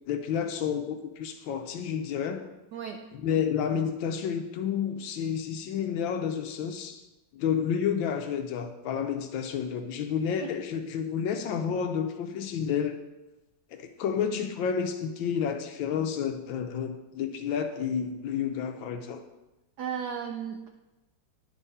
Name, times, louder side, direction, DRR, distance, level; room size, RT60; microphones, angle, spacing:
voice 1, 0.1-2.4 3.1-7.0 7.3-13.0 13.7-19.2, left 7 dB, 75° left, 6 dB, 1.3 m, -30 dB
voice 2, 19.8-20.7, right 7 dB, 85° right, 4 dB, 0.9 m, -34 dB
11.0 x 3.7 x 4.1 m, 1.0 s
omnidirectional pair, 2.3 m